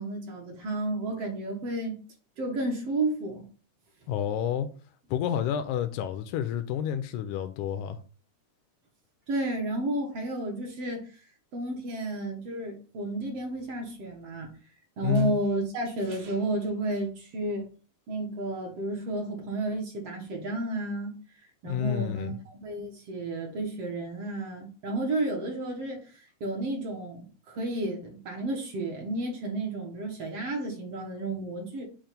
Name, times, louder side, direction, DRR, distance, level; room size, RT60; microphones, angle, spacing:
voice 1, 0.0-2.0 2.4-3.4 9.3-11.1 11.5-14.5 15.0-17.7 18.1-21.2 21.6-31.8, right 2 dB, 60° right, 1.9 m, -32 dB
voice 2, 4.1-4.7 5.1-8.0 15.0-15.4 21.6-22.4, left 9 dB, 85° left, 2.0 m, -29 dB
7.5 x 2.5 x 5.1 m
omnidirectional pair, 3.5 m